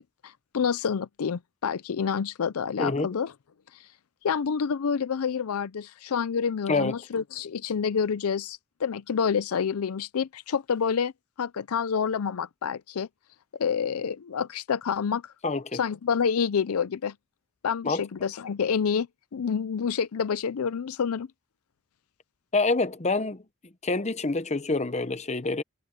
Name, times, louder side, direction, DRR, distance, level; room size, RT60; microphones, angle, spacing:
voice 1, 0.0-3.3 3.7-3.9 4.2-11.1 11.4-13.1 13.6-15.3 15.7-17.1 17.6-19.1 19.3-21.3, left 6 dB, 80° left, 0.5 m, -28 dB
voice 2, 15.4-15.8 17.8-18.0 22.5-23.4 23.8-25.6, left 3 dB, 30° left, 0.8 m, -26 dB
head